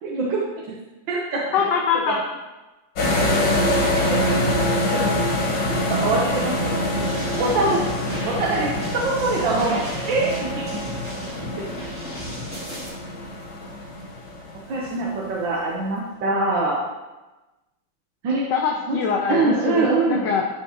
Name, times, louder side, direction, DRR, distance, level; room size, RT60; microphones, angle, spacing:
voice 1, 0.0-0.4 0.7-0.8 1.1-1.4 4.9-5.2 5.9-6.8 7.4-7.8 8.2-9.8 10.0-10.8 14.7-16.8 18.2-18.5 18.9-19.0 19.3-20.3, right 3 dB, 80° right, -4 dB, 1.7 m, -23 dB
voice 2, 1.5-2.2 18.5-20.5, left 6 dB, 70° left, 0 dB, 1.3 m, -23 dB
sound 1, 3.0-15.0, left 1 dB, 90° left, 2.1 m, -25 dB
sound 2, 7.0-12.9, equal, 5° right, 2.5 m, -36 dB
12.0 x 4.5 x 2.9 m, 1.1 s
omnidirectional pair, 2.0 m